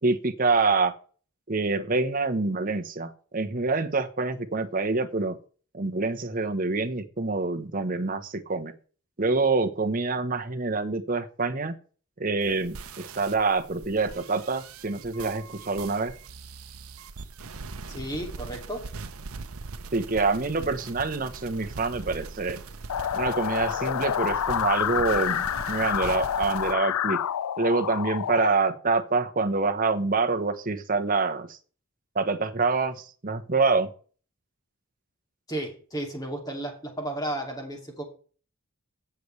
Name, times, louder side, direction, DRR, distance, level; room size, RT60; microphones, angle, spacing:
voice 1, 0.0-0.9 1.5-5.4 5.7-8.7 9.2-11.8 12.2-16.1 19.9-22.6 23.1-27.2 27.6-31.6 32.1-33.9, right 3 dB, 40° right, 7 dB, 1.0 m, -26 dB
sound 1, 12.4-26.7, right 4 dB, 75° right, 0.8 m, -41 dB
voice 2, 17.9-18.9 35.5-38.0, right 1 dB, 15° left, 2 dB, 2.5 m, -33 dB
sound 2, 22.9-28.5, left 9 dB, 85° left, 0.4 m, -28 dB
16.5 x 6.9 x 3.3 m, 0.40 s
head